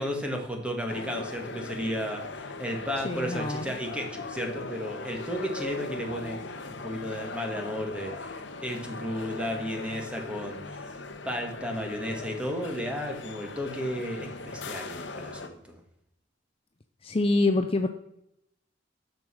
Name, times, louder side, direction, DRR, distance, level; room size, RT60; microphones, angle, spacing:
voice 1, 0.0-6.4 6.8-10.9 11.2-15.8, equal, 5° right, 2 dB, 1.8 m, -33 dB
sound 1, 0.9-15.5, left 3 dB, 70° left, 1.0 m, -39 dB
voice 2, 3.0-3.7 17.0-17.9, left 2 dB, 30° left, 6 dB, 0.5 m, -25 dB
10.5 x 6.5 x 6.2 m, 0.81 s
head